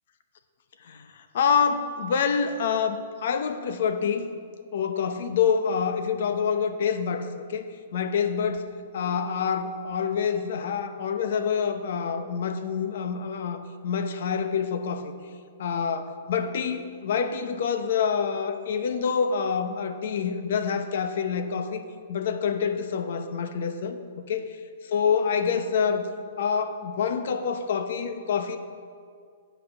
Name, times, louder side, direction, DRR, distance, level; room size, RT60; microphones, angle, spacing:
voice 1, 0.8-4.3 4.7-7.7 7.9-15.1 15.6-21.8 22.1-24.6 24.8-26.1 26.4-28.6, left 6 dB, 50° left, 9 dB, 0.7 m, -27 dB
8.3 x 5.6 x 7.7 m, 2.2 s
hypercardioid pair, 175°, 0 cm